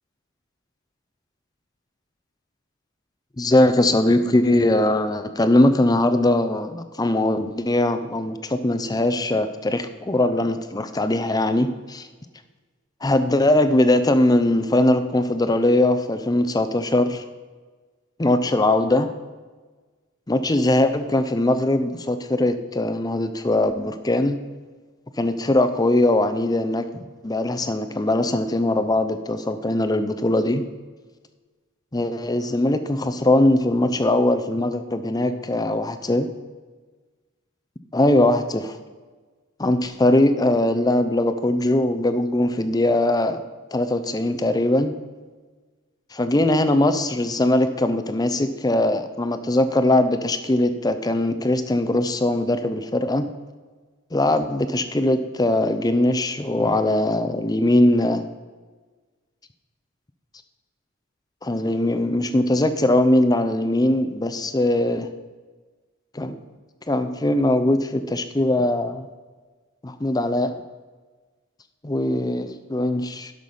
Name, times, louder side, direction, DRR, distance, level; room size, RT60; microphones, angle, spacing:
voice 1, 3.4-12.1 13.0-17.2 18.2-19.1 20.3-24.4 25.2-30.6 31.9-36.3 37.9-38.8 39.6-43.4 43.7-44.9 46.1-53.3 54.1-58.2 61.4-65.1 66.1-66.4 66.9-69.1 69.8-70.5 71.8-73.3, left 1 dB, 20° left, 10 dB, 0.6 m, -21 dB
11.5 x 6.0 x 5.5 m, 1.4 s
head